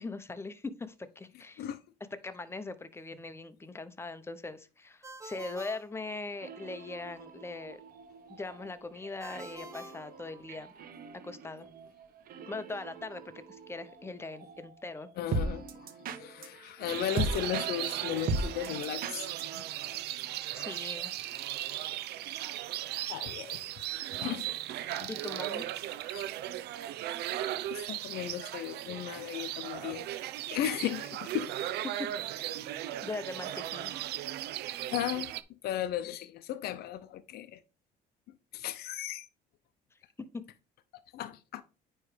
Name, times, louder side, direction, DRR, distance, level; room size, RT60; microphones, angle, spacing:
voice 1, 0.0-1.6 2.2-7.8 8.3-10.7 11.2-11.7 12.5-15.1 20.5-21.1 25.1-25.7 31.8-32.1 32.4-32.6 33.0-33.9 40.2-40.4, left 3 dB, 15° left, 0.9 m, -41 dB
Ringtone, 5.0-6.7 9.2-10.9, equal, 15° right, 1.4 m, -48 dB
sound 1, 6.3-20.0, right 3 dB, 60° right, 1.2 m, -40 dB
voice 2, 15.2-15.9 16.2-19.6 23.1-23.6 24.1-24.5 25.0-25.1 26.1-26.3 27.7-30.0 30.5-31.5 34.9-35.3 35.6-37.6 38.5-39.3 41.1-41.6, left 12 dB, 70° left, 0.7 m, -36 dB
sound 2, 16.9-35.4, right 13 dB, 80° right, 0.6 m, -37 dB
9.5 x 3.2 x 5.1 m
cardioid pair, 110°, 17 cm